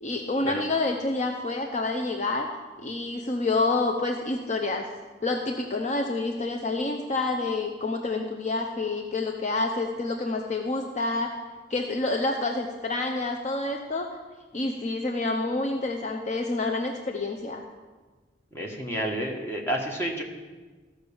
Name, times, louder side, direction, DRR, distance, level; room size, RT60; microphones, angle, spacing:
voice 1, 0.0-2.5 2.8-4.9 5.2-11.4 11.7-14.1 14.5-17.6, left 2 dB, 40° left, 3 dB, 0.7 m, -28 dB
voice 2, 18.5-20.2, equal, 15° left, 0 dB, 1.4 m, -30 dB
14.5 x 6.0 x 7.0 m, 1.3 s
head